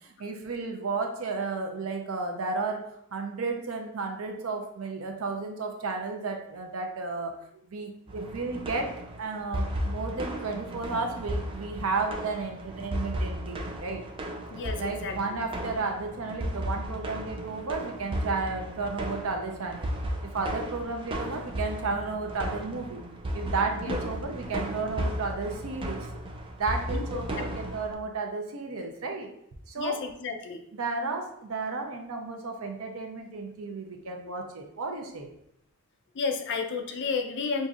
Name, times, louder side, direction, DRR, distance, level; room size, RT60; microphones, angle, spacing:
voice 1, 0.0-7.4 7.7-8.9 9.2-14.0 14.7-19.9 20.2-23.0 23.3-26.1 26.6-29.3 29.7-30.0 30.7-35.3, right 3 dB, 75° right, 3 dB, 0.6 m, -33 dB
sound 1, 8.1-27.9, equal, 25° right, 0.4 m, -35 dB
voice 2, 14.5-15.2 23.9-24.0 26.9-27.0 27.4-27.5 29.8-30.6 36.2-37.7, left 5 dB, 55° left, 4 dB, 0.5 m, -31 dB
5.1 x 2.6 x 2.4 m, 0.73 s
head